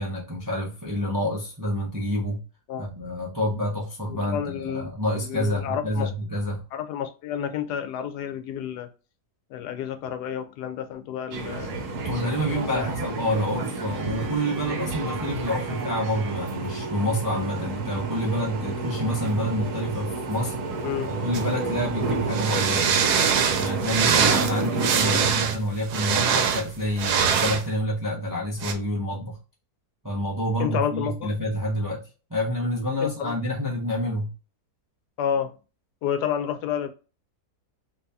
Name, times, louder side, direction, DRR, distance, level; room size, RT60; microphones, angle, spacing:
voice 1, 0.0-2.4 2.8-6.6 12.0-20.5 21.1-23.0 23.6-29.4 30.0-32.0 32.3-34.3, equal, 25° right, 0.4 m, -28 dB
voice 2, 4.1-4.9 5.2-6.1 6.7-8.9 9.5-12.0 12.5-12.9 20.8-21.1 25.0-25.2 30.6-31.3 33.0-33.3 35.2-35.5 36.0-36.9, left 9 dB, 85° left, 1.2 m, -30 dB
sound 1, 11.3-25.3, right 3 dB, 60° right, 1.0 m, -30 dB
sound 2, 21.3-21.5 22.3-27.6 28.6-28.7, right 7 dB, 80° right, 1.1 m, -23 dB
2.9 x 2.7 x 3.3 m
omnidirectional pair, 1.7 m